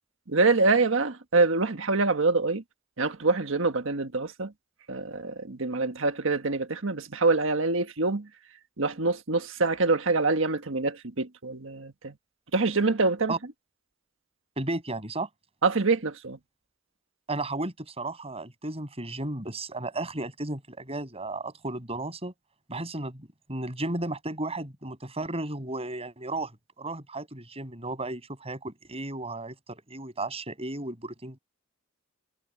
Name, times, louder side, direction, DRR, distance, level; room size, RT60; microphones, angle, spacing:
voice 1, 0.3-2.6 3.0-4.5 4.9-8.3 8.8-12.1 12.5-13.3 15.6-16.4, right 3 dB, 70° right, 1.6 m, -25 dB
voice 2, 14.6-15.3 17.3-22.3 22.7-26.5 26.8-31.4, right 2 dB, 30° right, 6.7 m, -34 dB
head